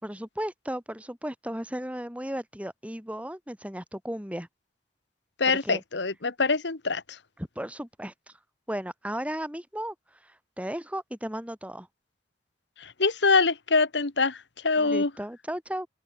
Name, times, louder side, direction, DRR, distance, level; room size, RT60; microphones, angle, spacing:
voice 1, 0.0-4.5 5.5-5.8 7.4-8.1 8.7-9.9 10.2-11.9 14.8-15.9, equal, 5° right, 4.5 m, -35 dB
voice 2, 5.4-7.0 12.8-15.1, left 4 dB, 65° left, 1.5 m, -24 dB
head